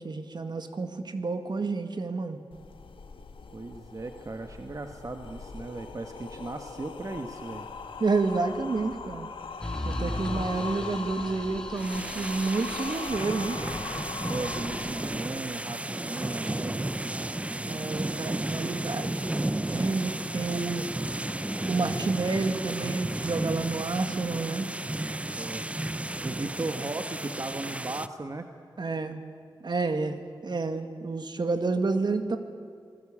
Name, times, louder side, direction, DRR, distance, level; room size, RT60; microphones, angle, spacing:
voice 1, 0.0-2.4 8.0-9.3 9.8-13.6 17.7-20.9 21.7-24.7 28.8-29.2 29.6-32.4, right 3 dB, 55° right, 8 dB, 2.0 m, -29 dB
sound 1, 2.5-15.5, left 4 dB, 85° left, 1.6 m, -40 dB
voice 2, 3.5-7.7 14.3-17.2 25.3-25.7 26.2-28.5, right 2 dB, 40° right, 6 dB, 1.4 m, -37 dB
sound 2, 9.6-13.2, left 1 dB, 10° left, 2.7 m, -37 dB
sound 3, 11.8-28.1, right 1 dB, 15° right, 0.7 m, -33 dB
26.5 x 20.0 x 8.7 m, 2.4 s
wide cardioid pair, 75°, 9 cm